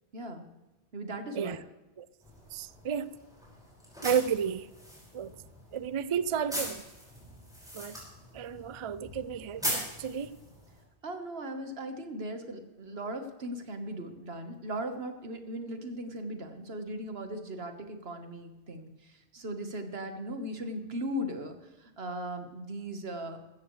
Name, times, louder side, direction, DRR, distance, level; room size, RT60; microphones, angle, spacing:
voice 1, 0.1-0.5 0.9-1.6 11.0-23.4, right 1 dB, 70° right, 6 dB, 1.6 m, -38 dB
sound 1, 2.2-10.8, equal, 5° right, 5.4 m, -41 dB
voice 2, 2.5-3.1 4.0-4.7 5.1-5.3 5.7-6.8 7.7-8.0 8.3-10.4, right 8 dB, 55° right, 16 dB, 0.3 m, -32 dB
16.0 x 13.5 x 3.2 m, 1.1 s
omnidirectional pair, 1.1 m